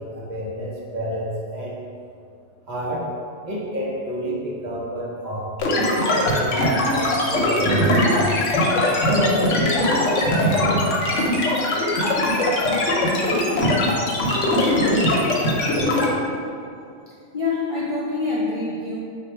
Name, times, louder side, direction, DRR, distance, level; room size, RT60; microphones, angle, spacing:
voice 1, 0.0-1.8 2.7-3.1 3.4-6.6 6.9-8.4 9.1-10.9, right 1 dB, 45° right, -5 dB, 0.7 m, -28 dB
sound 1, 5.6-16.1, left 1 dB, 85° left, 1.1 m, -20 dB
voice 2, 16.8-19.0, left 3 dB, 45° left, -8 dB, 0.4 m, -26 dB
4.0 x 2.6 x 4.4 m, 2.4 s
omnidirectional pair, 1.2 m